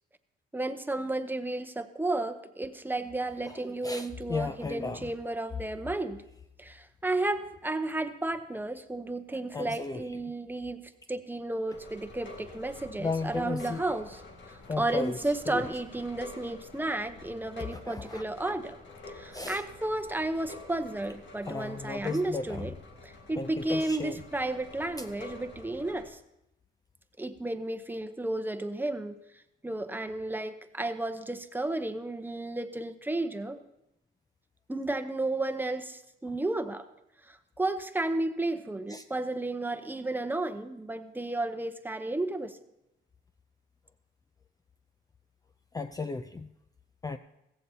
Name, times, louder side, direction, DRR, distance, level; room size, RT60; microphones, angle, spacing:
voice 1, 0.5-6.2 6.6-14.2 14.8-18.8 19.1-22.7 23.0-26.2 27.2-29.2 29.6-33.6 34.7-36.8 37.3-42.6, right 2 dB, 10° right, 9 dB, 0.8 m, -33 dB
voice 2, 3.4-5.1 9.5-10.2 13.0-13.8 14.7-15.2 15.5-15.7 17.7-18.6 19.3-19.6 21.4-22.7 23.3-24.2 25.0-25.1 38.9-39.1 45.7-46.5 47.0-47.2, left 4 dB, 20° left, 9 dB, 0.4 m, -35 dB
sound 1, 11.7-26.1, left 2 dB, 65° left, 1.9 m, -48 dB
16.0 x 14.5 x 2.8 m, 0.86 s
cardioid pair, 90°, 20 cm